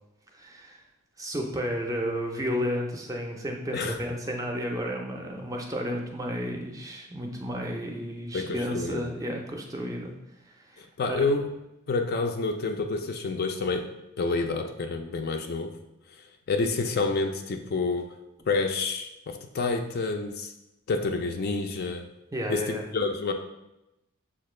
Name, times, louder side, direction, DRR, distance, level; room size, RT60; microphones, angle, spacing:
voice 1, 0.3-0.8 1.2-10.1 10.7-10.8 11.1-11.3 22.3-22.8, equal, 15° right, 1 dB, 0.5 m, -32 dB
voice 2, 8.3-9.1 10.8-11.5 11.9-13.9 14.2-15.7 16.5-18.1 18.5-20.5 20.9-22.0 22.5-23.3, left 3 dB, 45° left, 5 dB, 0.3 m, -28 dB
6.5 x 2.2 x 3.1 m, 0.91 s
head